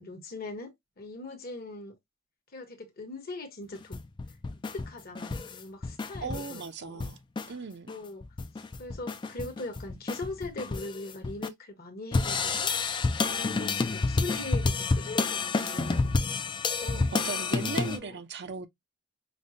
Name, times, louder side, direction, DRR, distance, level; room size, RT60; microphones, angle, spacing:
voice 1, 0.0-1.9 2.5-4.0 4.7-7.0 7.9-8.3 8.8-12.7 13.2-16.2 16.8-17.0 17.8-18.2, left 2 dB, 40° left, 1.0 m, -40 dB
sound 1, 3.7-6.7 7.0-7.5 7.9-11.5 12.1-18.0, left 3 dB, 20° left, 0.3 m, -29 dB
voice 2, 6.2-7.2 7.5-7.9 16.9-18.7, right 4 dB, 50° right, 0.5 m, -37 dB
5.2 x 2.2 x 2.6 m
head